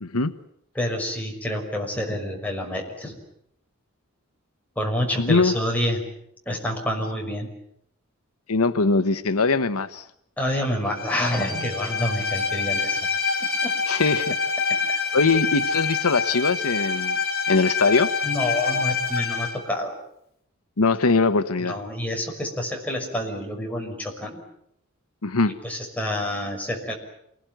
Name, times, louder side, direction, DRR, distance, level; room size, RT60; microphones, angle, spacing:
voice 1, 0.0-0.3 5.2-5.5 8.5-10.0 11.6-11.7 13.9-14.4 14.9-17.2 17.5-18.1 20.8-21.8 25.2-25.5, left 3 dB, 90° left, 1.1 m, -22 dB
voice 2, 0.7-3.2 4.8-6.0 6.5-7.5 10.4-13.0 13.6-13.7 18.2-20.0 21.6-24.4 25.5-26.9, left 1 dB, 5° left, 5.9 m, -28 dB
Bowed string instrument, 11.0-19.6, left 5 dB, 45° left, 5.0 m, -26 dB
28.0 x 20.0 x 9.2 m
head